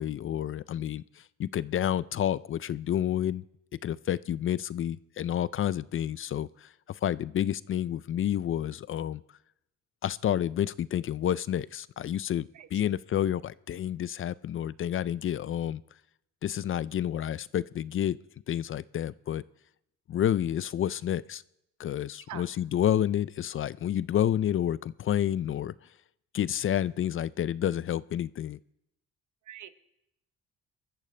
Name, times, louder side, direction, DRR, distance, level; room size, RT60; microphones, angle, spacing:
voice 1, 0.0-3.4 3.8-9.2 10.0-15.8 16.4-18.2 18.5-19.4 20.1-21.4 21.8-25.7 26.3-28.6, left 10 dB, 45° left, 19 dB, 0.4 m, -29 dB
voice 2, 12.5-12.7 22.3-22.4 29.5-29.7, right 11 dB, 75° right, 11 dB, 1.0 m, -42 dB
21.5 x 14.0 x 3.3 m, 0.82 s
cardioid pair, 90°, 30 cm